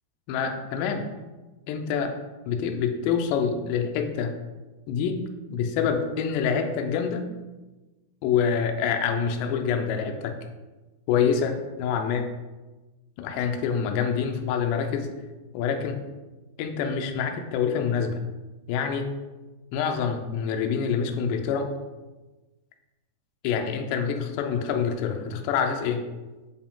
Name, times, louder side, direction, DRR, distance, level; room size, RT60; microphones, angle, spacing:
voice 1, 0.3-1.0 1.7-2.1 2.5-4.3 4.9-5.2 5.5-7.2 8.2-10.3 11.1-12.3 13.2-15.1 15.5-16.0 16.6-18.2 18.7-19.1 19.7-21.7 23.4-26.1, left 6 dB, 80° left, 4 dB, 2.8 m, -26 dB
7.8 x 4.8 x 3.6 m, 1.2 s
omnidirectional pair, 5.0 m